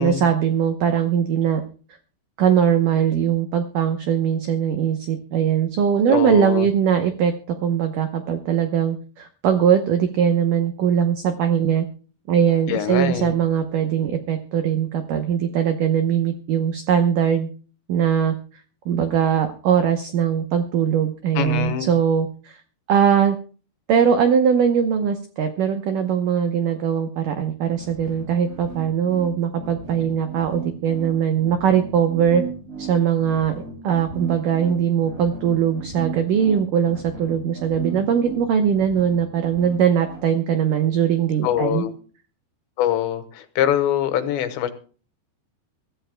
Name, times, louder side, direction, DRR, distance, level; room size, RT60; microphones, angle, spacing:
voice 1, 0.0-1.6 2.4-7.3 7.6-11.9 12.3-17.5 17.9-18.4 18.9-22.6 22.9-23.4 23.9-32.4 32.8-33.5 33.8-41.8, right 8 dB, 80° right, 7 dB, 1.8 m, -20 dB
voice 2, 6.1-6.7 12.7-13.3 21.4-21.9 41.4-42.0 42.8-44.7, left 10 dB, 85° left, 10 dB, 3.3 m, -23 dB
sound 1, 27.7-40.3, right 4 dB, 20° right, 2.3 m, -36 dB
23.5 x 13.5 x 2.2 m, 0.38 s
omnidirectional pair, 5.1 m